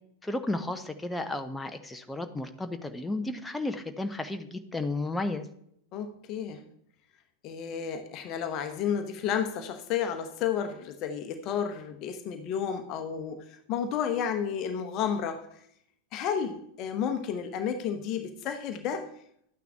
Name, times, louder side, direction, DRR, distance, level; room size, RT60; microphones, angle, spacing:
voice 1, 0.2-5.5, left 2 dB, 5° left, 0.8 m, -33 dB
voice 2, 5.9-6.6 7.4-15.7 16.1-19.1, left 8 dB, 40° left, 1.0 m, -32 dB
11.5 x 9.3 x 3.6 m
figure-of-eight pair, 90°, 0 cm